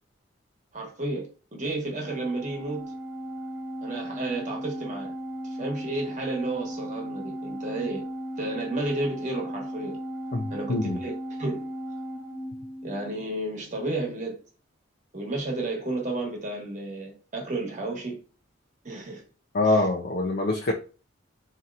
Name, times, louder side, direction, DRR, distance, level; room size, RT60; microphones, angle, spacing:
voice 1, 0.7-2.8 3.8-5.1 5.6-8.0 8.4-10.0 10.5-11.7 12.8-14.4 15.1-18.2 18.8-19.2 19.7-19.8, right 2 dB, 40° right, 1.1 m, -32 dB
Organ, 2.1-13.3, equal, 80° left, 1.3 m, -36 dB
voice 2, 10.3-11.0 19.5-20.7, left 2 dB, 50° left, 0.5 m, -25 dB
4.3 x 2.8 x 2.4 m
head